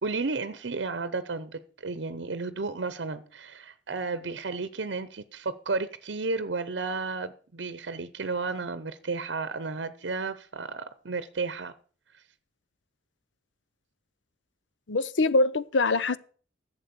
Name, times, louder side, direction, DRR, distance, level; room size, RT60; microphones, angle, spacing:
voice 1, 0.0-11.7, right 3 dB, 70° right, 0.8 m, -33 dB
voice 2, 14.9-16.2, left 3 dB, 80° left, 0.7 m, -23 dB
11.5 x 7.6 x 6.8 m
head